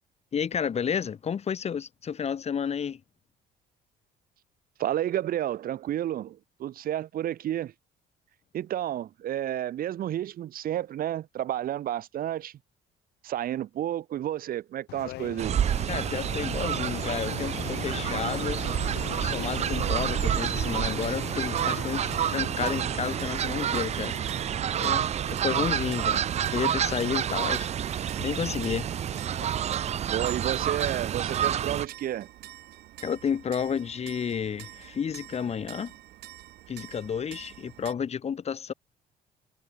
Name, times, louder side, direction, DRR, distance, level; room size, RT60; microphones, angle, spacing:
voice 1, 0.3-3.0 15.9-18.6 19.2-24.1 24.8-26.2 26.5-28.9 33.0-35.9 36.7-38.7, left 7 dB, 40° left, 2.2 m, -31 dB
voice 2, 4.8-7.7 8.5-12.5 13.2-15.6 30.1-32.3, right 12 dB, 60° right, 1.5 m, -31 dB
sound 1, 14.9-29.5, left 17 dB, 80° left, 1.0 m, -42 dB
Fowl, 15.4-31.9, right 9 dB, 40° right, 0.5 m, -29 dB
sound 2, 20.6-37.9, right 16 dB, 75° right, 2.5 m, -47 dB
cardioid pair, 110°, 17 cm